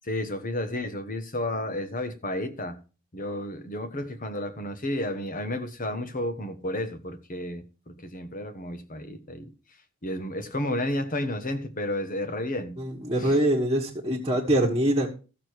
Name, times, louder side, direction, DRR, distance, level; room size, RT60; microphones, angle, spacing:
voice 1, 0.0-2.8 3.1-9.5 10.0-12.8 13.2-13.3, left 1 dB, 40° left, 1.3 m, -32 dB
voice 2, 12.8-15.1, right 1 dB, 15° right, 1.6 m, -24 dB
14.5 x 6.7 x 4.6 m
head